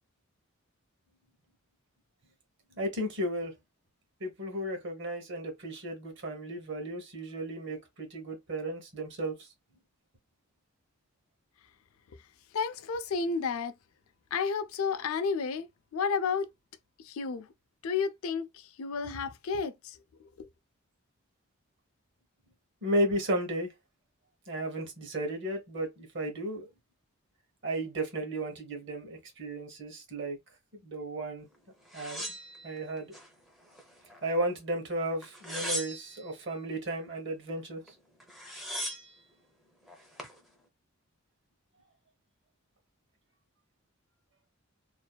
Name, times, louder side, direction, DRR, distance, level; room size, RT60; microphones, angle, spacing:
voice 1, 2.8-3.5 4.2-9.5 22.8-23.7 24.5-26.7 27.6-30.4 30.8-31.5 31.9-32.3 32.6-33.1 34.2-37.9, right 1 dB, 55° right, 0.9 m, -34 dB
voice 2, 12.5-13.7 14.3-15.7 15.9-16.5 17.1-17.5 17.8-18.5 18.8-19.7 20.4-20.5, left 5 dB, 75° left, 0.4 m, -31 dB
sound 1, 31.9-33.3 33.7-34.5 35.2-36.3 37.9-38.0 38.2-39.2 39.9-40.4, equal, ahead, 0.4 m, -39 dB
2.6 x 2.2 x 2.2 m
head